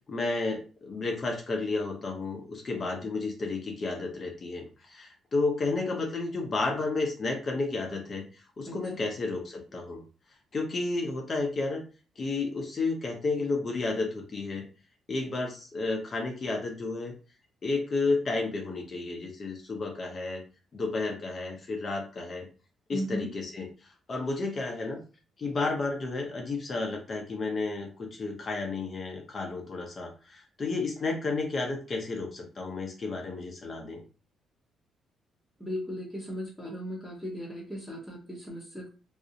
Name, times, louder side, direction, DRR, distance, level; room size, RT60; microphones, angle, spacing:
voice 1, 0.1-10.0 10.5-11.8 12.2-14.6 15.1-17.1 17.6-20.4 20.7-22.5 22.9-25.0 25.4-34.0, left 3 dB, 40° left, 2 dB, 0.6 m, -32 dB
voice 2, 8.6-9.1 22.9-23.3 35.6-38.9, equal, ahead, -6 dB, 0.8 m, -37 dB
2.4 x 2.0 x 2.7 m, 0.35 s
cardioid pair, 90°, 0 cm